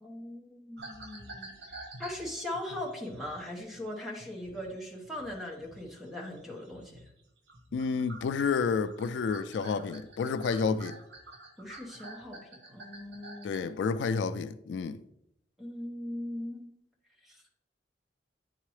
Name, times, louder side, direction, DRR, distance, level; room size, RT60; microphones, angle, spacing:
voice 1, 0.0-1.5 2.0-7.0 11.6-12.4 12.7-13.6 15.6-16.7 17.2-17.4, left 1 dB, ahead, 1.1 m, -40 dB
sound 1, 0.8-7.2 7.5-13.8, right 2 dB, 75° right, 1.1 m, -49 dB
voice 2, 7.7-11.0 13.4-15.0, left 5 dB, 85° left, 0.3 m, -30 dB
9.1 x 3.7 x 3.2 m
head